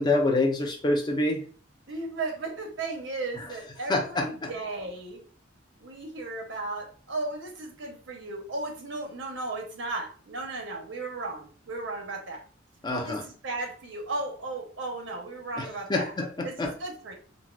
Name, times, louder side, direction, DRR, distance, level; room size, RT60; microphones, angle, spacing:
voice 1, 0.0-1.4 3.9-4.5 12.8-13.2 15.6-15.7 15.9-16.7, left 2 dB, 20° left, 1 dB, 0.5 m, -26 dB
voice 2, 1.9-5.2 5.8-12.4 12.9-16.1 16.4-17.1, right 2 dB, 75° right, 2 dB, 0.8 m, -35 dB
4.0 x 2.0 x 2.3 m, 0.42 s
head